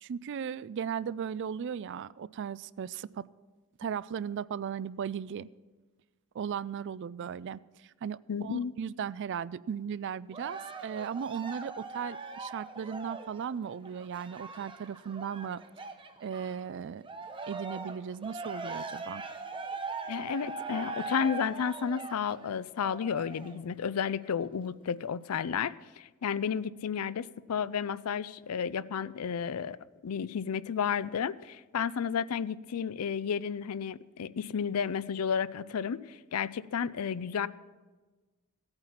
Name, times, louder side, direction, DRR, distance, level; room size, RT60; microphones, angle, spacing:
voice 1, 0.0-3.2 3.8-5.5 6.3-15.6 16.2-17.0 17.5-19.2, right 7 dB, 55° right, 19 dB, 0.3 m, -37 dB
voice 2, 8.3-8.7 20.1-29.8 30.0-37.5, left 7 dB, 80° left, 18 dB, 0.4 m, -32 dB
Cheering, 10.3-16.6 17.0-23.6 24.2-24.3, right 3 dB, 20° right, 0.8 m, -41 dB
16.0 x 8.8 x 5.8 m, 1.3 s
head